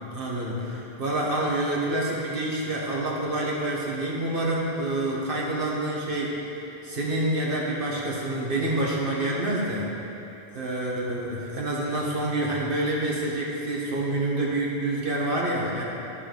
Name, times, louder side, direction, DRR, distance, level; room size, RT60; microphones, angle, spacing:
voice 1, 0.1-6.4 6.8-9.9 10.5-15.8, right 1 dB, 55° right, -4 dB, 1.6 m, -27 dB
13.5 x 5.3 x 3.9 m, 3.0 s
omnidirectional pair, 1.1 m